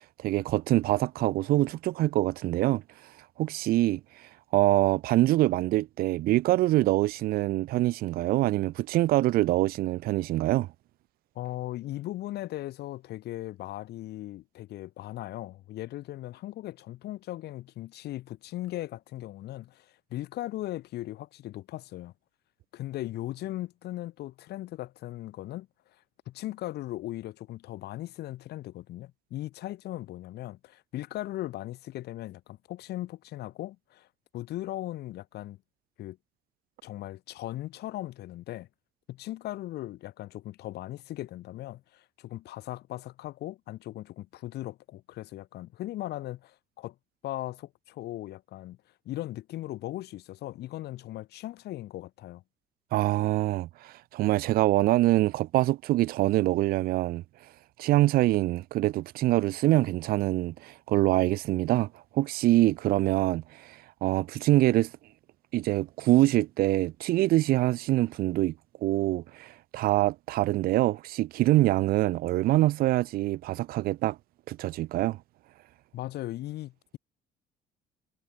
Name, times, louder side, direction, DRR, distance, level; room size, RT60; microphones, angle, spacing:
voice 1, 0.2-2.8 3.4-4.0 4.5-10.7 52.9-57.2 57.8-61.9 62.1-64.9 65.5-68.5 68.8-74.2 74.5-75.2, right 16 dB, 65° right, 0.4 m, -25 dB
voice 2, 11.3-22.1 22.7-25.7 26.3-34.1 34.3-35.6 36.0-36.2 36.8-38.7 39.1-46.9 47.2-48.8 49.0-52.4 75.9-77.0, left 15 dB, 75° left, 4.9 m, -38 dB
cardioid pair, 110°, 17 cm